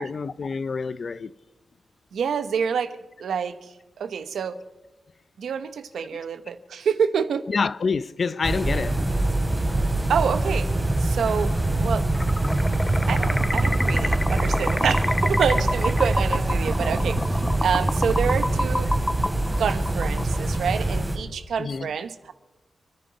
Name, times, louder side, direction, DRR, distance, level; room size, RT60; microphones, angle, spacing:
voice 1, 0.0-1.3 7.5-9.1 21.6-21.9, left 5 dB, 55° left, 0.6 m, -27 dB
voice 2, 2.1-4.6 5.4-7.4 10.1-10.7 11.0-11.5 11.8-12.1 13.1-18.9 19.6-22.3, right 7 dB, 90° right, 1.0 m, -27 dB
sound 1, 8.4-21.2, right 2 dB, 15° right, 3.1 m, -24 dB
sound 2, 12.1-20.6, left 1 dB, 10° left, 0.6 m, -29 dB
28.5 x 10.5 x 4.2 m
cardioid pair, 90°, 0 cm